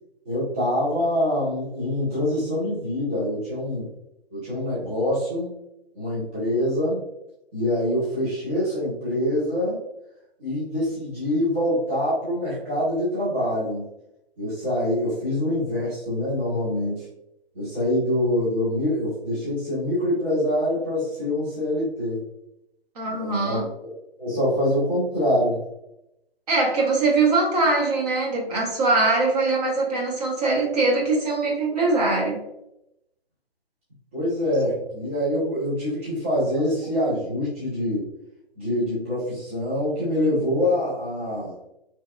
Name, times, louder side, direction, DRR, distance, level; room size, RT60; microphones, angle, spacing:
voice 1, 0.3-3.9 4.3-5.5 5.9-7.0 7.5-9.8 10.4-13.8 14.4-17.1 17.5-22.2 23.0-23.9 24.2-25.6 34.1-38.0 38.6-41.5, left 1 dB, 10° right, -11 dB, 0.3 m, -25 dB
voice 2, 23.0-23.7 26.5-32.4, right 3 dB, 40° right, -1 dB, 0.8 m, -22 dB
2.7 x 2.3 x 2.3 m, 0.84 s
figure-of-eight pair, 130°, 31 cm